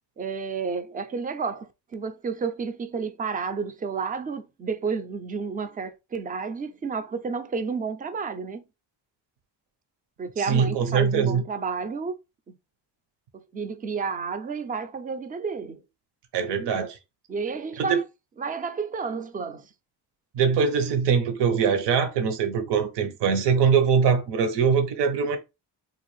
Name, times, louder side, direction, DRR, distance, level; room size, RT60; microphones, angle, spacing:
voice 1, 0.2-8.6 10.2-12.2 13.3-15.8 17.3-18.0 18.4-19.7, right 5 dB, 20° right, 0.3 m, -31 dB
voice 2, 10.4-11.4 16.3-17.0 17.8-18.0 20.3-25.4, right 6 dB, 75° right, 0.8 m, -22 dB
3.9 x 2.4 x 3.1 m
cardioid pair, 125°, 42 cm